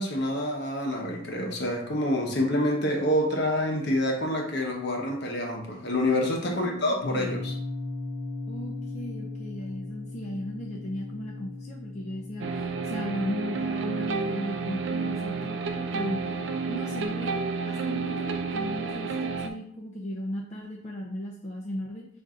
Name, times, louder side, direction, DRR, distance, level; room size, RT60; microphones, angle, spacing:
voice 1, 0.0-7.5, left 1 dB, 55° left, 0 dB, 0.9 m, -27 dB
voice 2, 6.4-7.4 8.5-16.2 16.7-17.3 17.7-22.1, left 1 dB, 35° left, -3 dB, 0.5 m, -36 dB
sound 1, 7.0-17.2, left 2 dB, 90° left, 0.6 m, -39 dB
sound 2, 12.4-19.5, right 4 dB, 60° right, 0.4 m, -30 dB
5.4 x 2.6 x 3.7 m, 0.69 s
head